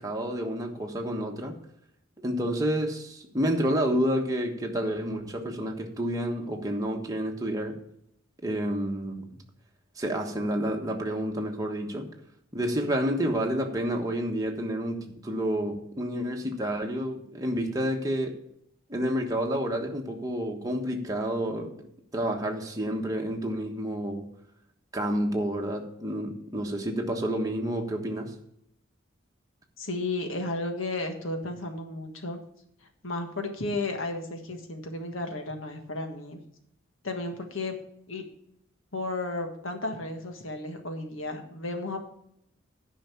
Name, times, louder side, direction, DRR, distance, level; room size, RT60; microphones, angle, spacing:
voice 1, 0.0-1.6 2.2-7.8 8.4-9.3 10.0-12.1 12.5-18.4 18.9-21.7 22.1-24.2 24.9-28.3, equal, 15° right, 1 dB, 1.3 m, -29 dB
voice 2, 29.8-32.4 32.8-36.4 37.0-37.7 38.1-38.2 38.9-42.0, left 2 dB, 75° left, 5 dB, 1.6 m, -33 dB
10.0 x 5.6 x 7.2 m, 0.74 s
head